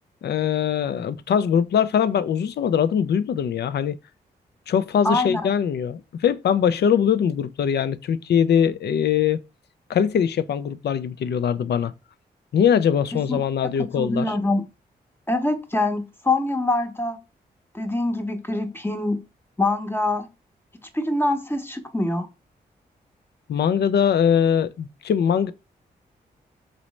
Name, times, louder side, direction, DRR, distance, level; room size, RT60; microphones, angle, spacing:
voice 1, 0.2-4.0 4.7-9.4 9.9-11.9 12.5-14.4 23.5-25.5, left 8 dB, 60° left, 0.4 m, -22 dB
voice 2, 5.0-5.5 13.3-13.4 13.8-14.6 15.3-17.2 17.7-19.2 19.6-20.3 20.9-22.3, left 2 dB, 10° left, 1.0 m, -24 dB
4.0 x 3.0 x 3.1 m
supercardioid pair, 40°, 19 cm